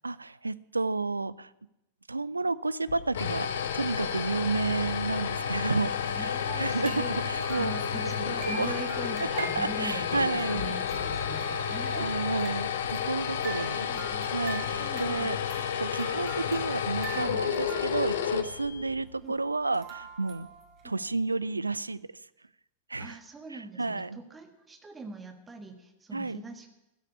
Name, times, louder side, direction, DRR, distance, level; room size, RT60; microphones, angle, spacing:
voice 1, 0.0-1.5 2.1-3.5 3.7-8.7 9.4-10.8 11.9-13.9 14.3-15.4 15.8-20.5 20.8-22.0 22.9-23.2 23.5-24.2 26.1-26.4, right 3 dB, 80° right, 19 dB, 0.4 m, -31 dB
sound 1, 2.9-19.1, left 8 dB, 60° left, 1.1 m, -31 dB
voice 2, 6.1-7.2 7.5-12.6 13.0-14.3 14.8-15.3 17.1-17.4 19.2-19.3 20.8-20.9 23.0-26.8, right 3 dB, 15° right, 6 dB, 1.5 m, -42 dB
sound 2, 6.8-21.1, right 5 dB, 40° right, 2.7 m, -45 dB
13.5 x 6.6 x 9.6 m, 0.94 s
figure-of-eight pair, 90°, 0 cm